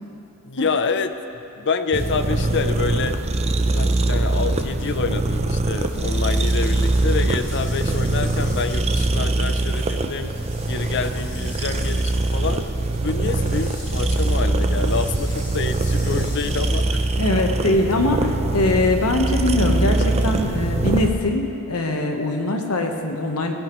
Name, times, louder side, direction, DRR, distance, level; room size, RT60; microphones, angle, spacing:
voice 1, 0.4-1.1 1.6-3.2 3.7-10.3 10.7-12.7 13.0-17.1, left 4 dB, 55° left, 9 dB, 0.6 m, -27 dB
sound 1, 1.9-21.1, right 2 dB, 30° right, 0.5 m, -22 dB
sound 2, 5.7-17.2, left 1 dB, 20° left, 2.2 m, -43 dB
voice 2, 17.1-23.5, left 2 dB, 85° left, 3 dB, 1.2 m, -22 dB
16.5 x 14.5 x 3.1 m, 2.8 s
head